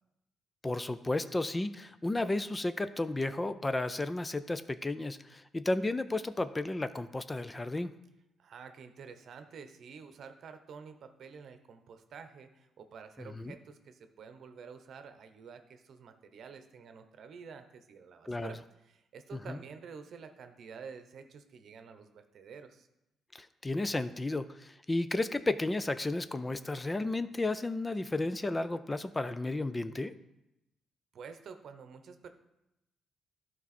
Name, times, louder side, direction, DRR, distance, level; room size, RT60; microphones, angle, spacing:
voice 1, 0.6-7.9 13.2-13.5 18.3-18.5 19.5-19.6 23.3-30.1, left 2 dB, 20° left, 12 dB, 0.4 m, -33 dB
voice 2, 8.4-22.9 31.1-32.3, right 6 dB, 65° right, 8 dB, 0.8 m, -49 dB
12.0 x 4.6 x 4.2 m, 0.90 s
cardioid pair, 90°, 0 cm